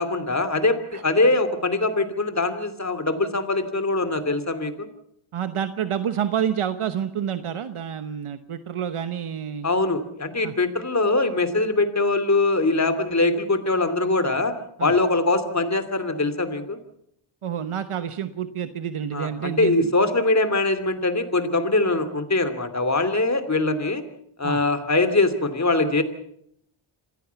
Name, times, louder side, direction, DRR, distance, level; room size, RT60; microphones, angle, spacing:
voice 1, 0.0-4.9 9.6-14.5 14.8-16.8 19.1-24.0 24.4-26.0, left 2 dB, 35° left, 11 dB, 2.8 m, -22 dB
voice 2, 5.3-9.7 10.4-10.5 14.8-14.9 17.4-19.9 24.4-24.6, right 9 dB, 80° right, 11 dB, 1.1 m, -28 dB
26.5 x 16.0 x 7.0 m, 0.70 s
wide cardioid pair, 75°, 50 cm